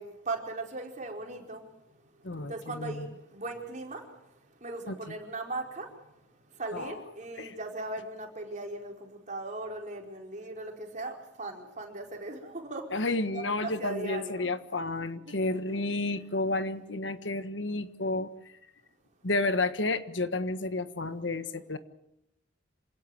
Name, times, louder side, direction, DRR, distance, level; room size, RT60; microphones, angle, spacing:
voice 1, 0.0-1.6 2.4-4.0 4.6-5.9 6.6-13.1 13.3-14.5 15.3-15.4 15.7-16.3, right 2 dB, 45° right, 1 dB, 4.7 m, -38 dB
voice 2, 2.2-3.1 4.9-5.0 6.7-7.0 7.4-7.5 12.9-18.5 19.2-21.8, left 2 dB, 90° left, 10 dB, 1.5 m, -31 dB
27.0 x 17.0 x 7.9 m, 0.87 s
head